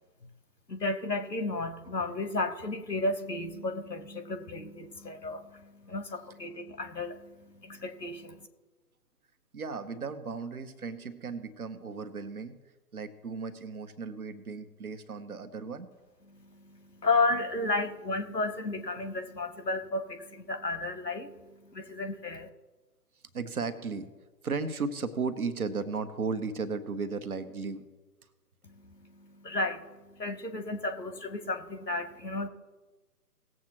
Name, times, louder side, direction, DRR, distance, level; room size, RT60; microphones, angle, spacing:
voice 1, 0.7-8.4 16.3-22.5 28.6-32.5, left 3 dB, 85° left, 9 dB, 1.4 m, -33 dB
voice 2, 9.5-12.6 12.9-15.9 23.3-24.1 24.4-27.9, right 4 dB, 65° right, 10 dB, 1.2 m, -35 dB
18.5 x 7.7 x 3.0 m, 1.2 s
figure-of-eight pair, 135°, 48 cm